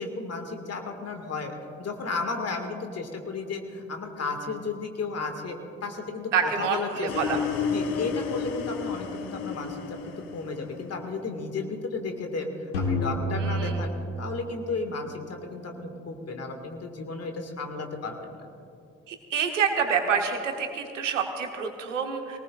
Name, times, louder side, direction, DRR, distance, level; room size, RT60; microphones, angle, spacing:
voice 1, 0.0-7.4 7.7-12.5 12.9-13.9 14.2-18.1, left 3 dB, 45° left, 4 dB, 2.2 m, -33 dB
voice 2, 6.3-7.4 13.4-13.8 19.1-22.4, right 6 dB, 85° right, 4 dB, 1.3 m, -27 dB
sound 1, 7.1-11.2, left 6 dB, 65° left, 1.3 m, -32 dB
sound 2, 12.7-14.9, equal, 85° left, 1.7 m, -29 dB
24.0 x 18.5 x 2.6 m, 2.5 s
figure-of-eight pair, 45°, 36 cm